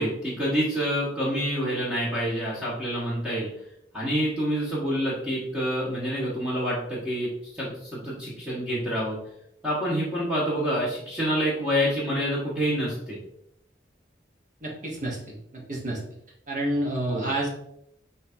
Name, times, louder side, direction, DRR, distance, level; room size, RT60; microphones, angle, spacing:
voice 1, 0.0-3.5 3.9-7.3 7.6-9.2 9.6-13.2 17.1-17.3, equal, 5° right, -9 dB, 1.3 m, -27 dB
voice 2, 14.6-16.0 16.5-17.5, right 1 dB, 45° right, -2 dB, 1.1 m, -29 dB
6.5 x 2.7 x 2.7 m, 0.74 s
head